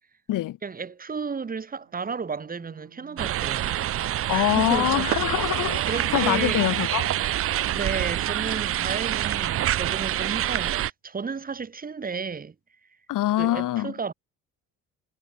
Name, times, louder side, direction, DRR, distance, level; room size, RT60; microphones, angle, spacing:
voice 1, 0.6-3.8 4.1-5.2 5.9-6.6 7.7-12.5 13.4-14.1, right 5 dB, 25° right, 1.3 m, -33 dB
sound 1, 1.7-8.5, right 19 dB, 85° right, 2.7 m, -51 dB
sound 2, 3.2-10.9, right 12 dB, 40° right, 0.4 m, -26 dB
voice 2, 4.3-7.1 13.1-13.9, left 14 dB, 65° left, 1.1 m, -24 dB
supercardioid pair, 80°, 34 cm